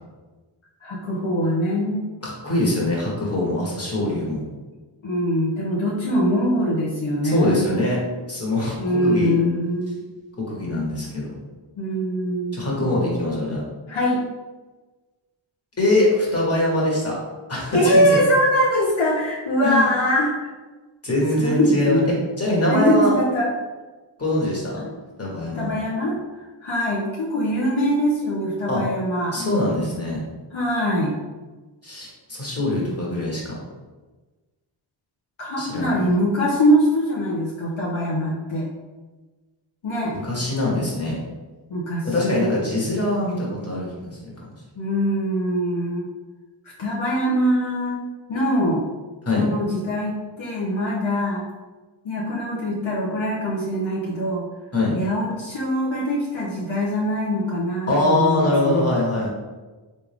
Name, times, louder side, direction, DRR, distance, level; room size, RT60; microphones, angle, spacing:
voice 1, 0.8-2.0 5.0-7.7 8.8-10.0 11.8-13.0 13.9-14.2 17.7-20.5 21.4-22.2 22.7-23.5 25.5-29.4 30.5-31.2 35.4-38.7 39.8-40.1 41.7-42.5 44.8-46.1 46.8-48.0 48.3-48.8 49.3-51.4 52.0-54.5 54.9-58.9, equal, 70° left, -5 dB, 0.9 m, -22 dB
voice 2, 2.2-4.4 7.2-8.0 8.3-8.8 9.0-9.3 10.4-11.3 12.5-13.6 15.8-17.2 17.5-18.2 19.6-19.9 21.0-22.0 22.4-23.1 24.2-24.9 25.2-25.7 28.7-28.8 29.3-30.2 31.8-33.5 35.6-35.9 40.1-41.2 42.0-44.1 44.4-44.5 49.2-49.5 54.7-55.0 57.9-59.3, left 1 dB, 30° left, -4 dB, 1.4 m, -23 dB
3.5 x 2.7 x 3.4 m, 1.3 s
cardioid pair, 45°, 48 cm